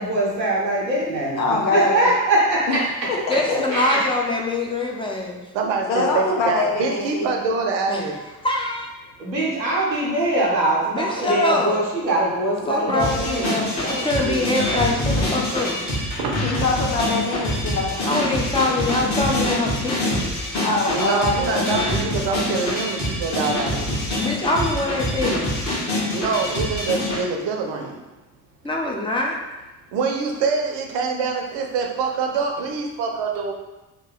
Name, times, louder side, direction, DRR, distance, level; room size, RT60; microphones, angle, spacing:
voice 1, 0.0-1.4 1.7-2.8 3.7-4.0 9.2-14.4, right 1 dB, 90° right, -5 dB, 0.7 m, -22 dB
voice 2, 1.4-2.1 2.7-2.8 3.1-3.2 3.5-3.8 5.9-7.3 16.4-18.3 20.6-22.0, left 3 dB, 85° left, -1 dB, 0.7 m, -23 dB
voice 3, 3.3-5.4 7.9-8.0 8.4-8.9 10.9-11.8 12.7-15.8 18.0-20.4 24.2-25.5 28.6-29.4, left 2 dB, 10° left, -1 dB, 0.5 m, -24 dB
voice 4, 5.5-8.2 14.6-14.7 16.2-16.4 20.9-23.9 26.1-28.0 29.9-33.5, right 4 dB, 55° right, 2 dB, 0.7 m, -25 dB
sound 1, 13.0-27.2, left 1 dB, 35° left, 1.3 m, -25 dB
2.9 x 2.8 x 3.8 m, 1.1 s
figure-of-eight pair, 45°, 50 cm